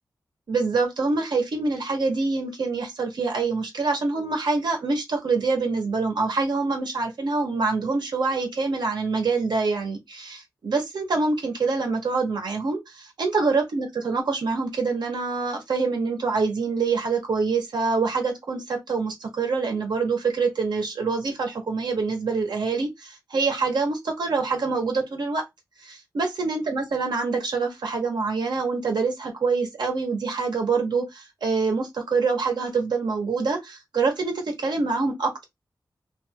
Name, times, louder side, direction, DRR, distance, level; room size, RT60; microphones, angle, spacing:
voice 1, 0.5-25.4 25.8-35.4, right 4 dB, 75° right, 1.2 m, -25 dB
2.7 x 2.6 x 2.9 m
wide cardioid pair, 150°, 7 cm